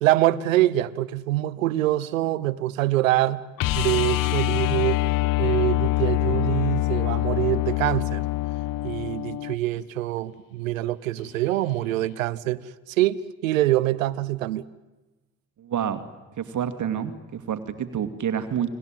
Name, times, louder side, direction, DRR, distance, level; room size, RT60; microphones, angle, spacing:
voice 1, 0.0-3.4 3.7-5.0 5.4-8.2 8.8-12.6 12.9-14.7, right 15 dB, 90° right, 0.9 m, -24 dB
sound 1, 3.6-9.6 12.0-12.1, left 18 dB, 60° left, 1.0 m, -24 dB
voice 2, 15.6-16.0 16.4-18.7, right 9 dB, 50° right, 2.3 m, -28 dB
29.5 x 21.5 x 9.1 m
hypercardioid pair, 60°, 38 cm